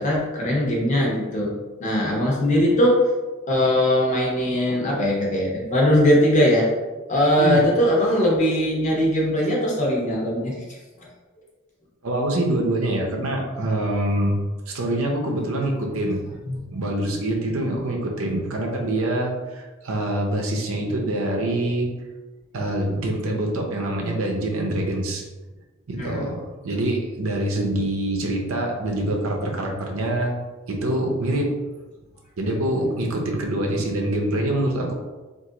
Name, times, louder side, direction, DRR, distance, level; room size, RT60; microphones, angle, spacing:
voice 1, 0.0-1.5 1.8-3.0 3.5-6.7 7.1-10.5 16.5-16.6 26.0-26.3, equal, 35° left, -3 dB, 0.9 m, -20 dB
voice 2, 12.0-14.4 14.7-16.2 16.7-21.9 22.5-25.2 25.9-30.3 30.7-31.5 32.4-34.9, right 1 dB, 70° right, 0 dB, 0.7 m, -25 dB
2.9 x 2.6 x 3.8 m, 1.2 s
head